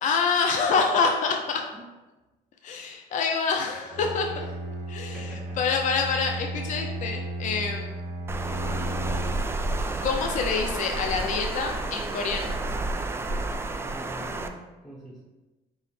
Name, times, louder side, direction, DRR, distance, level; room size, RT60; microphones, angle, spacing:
voice 1, 0.0-1.6 2.6-4.5 4.9-5.3 5.6-8.0 10.0-12.5, left 5 dB, 50° left, 3 dB, 0.5 m, -26 dB
Bowed string instrument, 3.9-9.6, right 1 dB, 65° right, 1.3 m, -34 dB
voice 2, 5.1-5.6 7.7-7.9 13.8-14.6 14.8-15.3, equal, 10° left, -6 dB, 0.9 m, -45 dB
Water, 8.3-14.5, right 2 dB, 15° right, 0.3 m, -30 dB
5.5 x 2.1 x 4.1 m, 1.1 s
cardioid pair, 110°, 17 cm